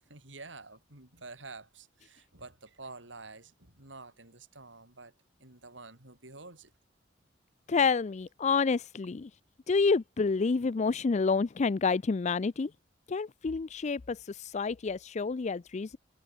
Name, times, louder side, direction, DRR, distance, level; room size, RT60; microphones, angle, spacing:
voice 1, 0.0-5.1 5.4-6.7, right 3 dB, 85° right, 6.0 m, -49 dB
voice 2, 7.7-9.3 9.7-12.7 13.1-16.0, left 4 dB, 40° left, 0.4 m, -28 dB
head